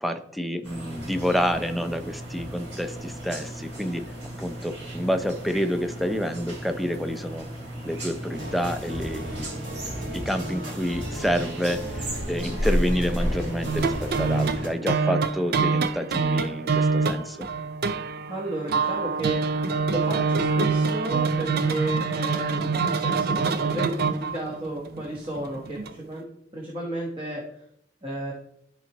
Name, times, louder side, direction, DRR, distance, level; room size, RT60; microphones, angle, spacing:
voice 1, 0.0-4.1 4.4-7.5 7.8-9.7 10.1-17.5, equal, ahead, 8 dB, 0.5 m, -28 dB
sound 1, 0.6-14.6, equal, 70° right, 3.1 m, -34 dB
sound 2, 8.3-14.7, right 1 dB, 90° right, 2.4 m, -36 dB
sound 3, 13.6-25.9, right 4 dB, 55° right, 0.4 m, -25 dB
voice 2, 18.3-19.5 19.9-25.8 26.1-26.2 26.5-27.4 28.0-28.3, right 1 dB, 30° right, -2 dB, 1.1 m, -33 dB
12.5 x 4.5 x 3.0 m, 0.73 s
head